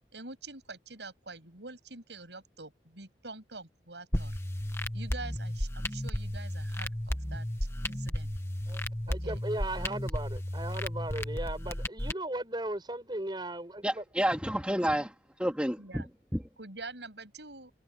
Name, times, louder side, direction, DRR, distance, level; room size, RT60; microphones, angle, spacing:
voice 1, 0.1-4.4 4.9-7.5 7.9-8.3 9.1-9.4 15.8-16.1 16.6-17.7, right 3 dB, 75° right, 7.6 m, -46 dB
sound 1, 4.1-12.1, left 1 dB, 15° left, 1.5 m, -34 dB
voice 2, 9.1-14.0, right 1 dB, 25° right, 6.4 m, -37 dB
voice 3, 13.8-15.1 15.4-16.0 16.3-16.4, equal, 5° right, 2.1 m, -29 dB
head